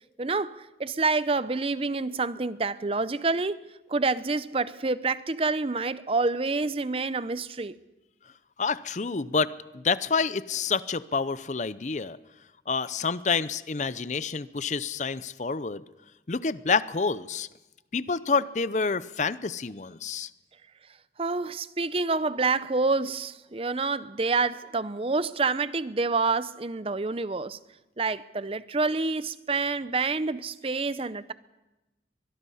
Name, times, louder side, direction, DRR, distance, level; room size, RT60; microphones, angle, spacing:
voice 1, 0.2-3.6 3.9-7.8 21.2-27.6 28.0-31.3, right 3 dB, 35° right, 0.6 m, -27 dB
voice 2, 8.6-12.2 12.7-15.8 16.3-17.5 17.9-20.3, left 5 dB, 40° left, 0.6 m, -28 dB
23.5 x 21.5 x 5.6 m
head